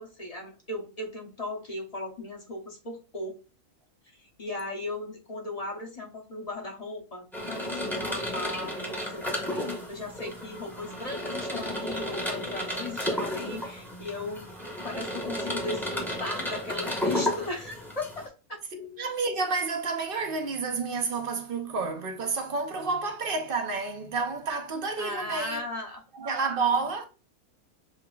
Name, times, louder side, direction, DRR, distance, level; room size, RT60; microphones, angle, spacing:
voice 1, 0.0-3.4 4.2-14.5 14.8-18.2 18.5-18.6 25.0-26.0, left 2 dB, 30° left, 0.9 m, -37 dB
sound 1, 7.3-18.3, left 1 dB, ahead, 0.9 m, -33 dB
voice 2, 18.7-25.6 26.1-27.1, right 4 dB, 50° right, 0.8 m, -30 dB
6.7 x 2.8 x 2.3 m
omnidirectional pair, 1.4 m